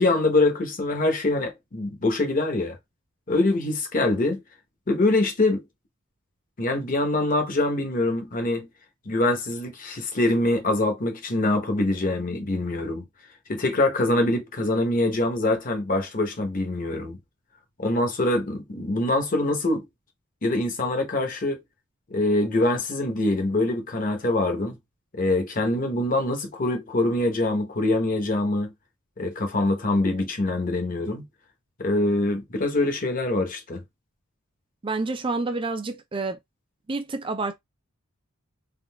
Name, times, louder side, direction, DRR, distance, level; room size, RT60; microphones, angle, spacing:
voice 1, 0.0-2.8 3.3-4.4 4.9-5.6 6.6-8.7 9.1-13.0 13.5-17.2 17.8-19.9 20.4-21.6 22.1-24.8 25.1-28.7 29.2-31.2 31.8-33.8, left 2 dB, 40° left, 0.8 m, -24 dB
voice 2, 34.8-36.4 36.9-37.5, right 3 dB, 25° right, 0.4 m, -28 dB
3.6 x 2.3 x 2.2 m
head